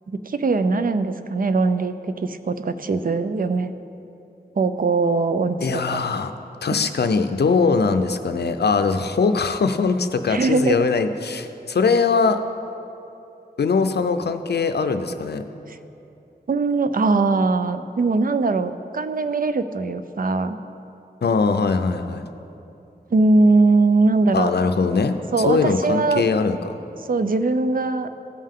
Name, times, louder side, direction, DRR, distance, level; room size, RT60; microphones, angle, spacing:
voice 1, 0.1-1.9 2.2-3.7 4.6-6.1 10.3-10.8 15.7-15.8 16.5-20.6 23.1-24.5 25.3-26.2 27.1-28.1, right 3 dB, 55° right, 10 dB, 0.5 m, -21 dB
voice 2, 5.6-6.3 6.6-12.4 13.6-15.4 21.2-22.2 24.3-25.2 25.5-26.8, left 4 dB, 75° left, 8 dB, 0.5 m, -21 dB
15.5 x 5.5 x 3.7 m, 2.8 s
wide cardioid pair, 70°, 17 cm